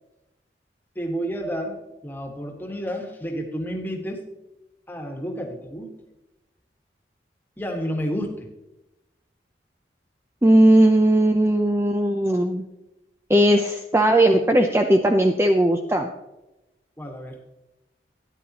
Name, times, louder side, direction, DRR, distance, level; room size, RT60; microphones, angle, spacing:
voice 1, 0.9-4.2 4.9-6.0 7.6-8.5 17.0-17.4, equal, 10° left, 2 dB, 1.5 m, -30 dB
voice 2, 10.4-12.6 13.3-16.1, right 1 dB, 15° right, 4 dB, 0.5 m, -18 dB
13.5 x 10.0 x 2.9 m, 0.96 s
head